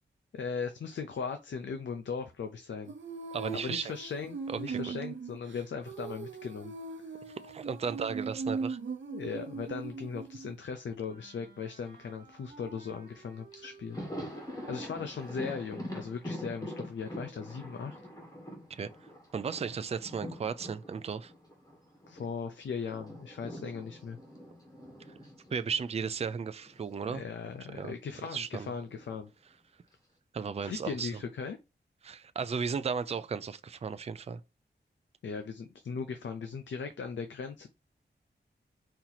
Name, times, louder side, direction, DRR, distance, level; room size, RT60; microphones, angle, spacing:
voice 1, 0.3-2.9 3.5-6.7 9.1-14.1 14.7-18.0 22.1-24.2 27.1-29.3 30.6-31.6 35.2-37.7, left 5 dB, 85° left, 0.6 m, -38 dB
Female singing, 2.9-10.6, right 4 dB, 85° right, 0.8 m, -39 dB
voice 2, 3.3-3.9 4.7-4.8 7.4-8.8 18.7-18.9 19.3-21.3 25.5-27.2 27.8-27.9 28.3-28.7 30.3-31.1 32.0-34.4, right 6 dB, 35° right, 0.4 m, -35 dB
Wind instrument woodwind instrument, 11.0-16.3, right 3 dB, 50° right, 1.3 m, -56 dB
Thunder, 13.1-13.2 13.5-22.3 22.6-26.9 27.2-27.3 28.5-29.2, equal, 20° left, 1.4 m, -44 dB
4.4 x 2.8 x 4.0 m
wide cardioid pair, 130°, 19 cm